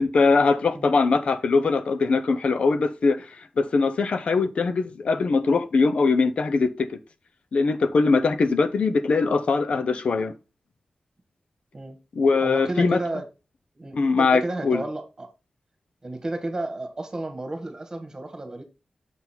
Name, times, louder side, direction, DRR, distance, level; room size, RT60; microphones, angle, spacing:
voice 1, 0.0-6.9 7.5-10.3 12.2-13.0 13.9-14.8, left 4 dB, 65° left, 0.7 m, -21 dB
voice 2, 12.4-13.2 13.7-15.3 16.0-18.6, right 2 dB, 30° right, 1.6 m, -32 dB
7.2 x 4.0 x 4.4 m
wide cardioid pair, 100°, 2 cm